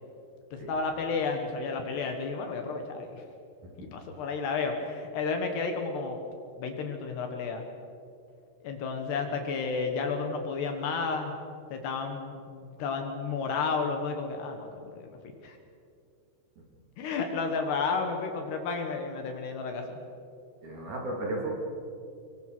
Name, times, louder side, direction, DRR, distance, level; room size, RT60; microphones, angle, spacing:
voice 1, 0.5-3.2 3.8-6.2 6.6-7.6 8.6-11.3 11.7-15.2 15.4-15.6 17.0-20.0, left 4 dB, 65° left, 5 dB, 3.3 m, -32 dB
voice 2, 20.6-21.5, right 2 dB, 45° right, -1 dB, 4.0 m, -34 dB
24.5 x 23.0 x 6.2 m, 2.5 s
omnidirectional pair, 5.6 m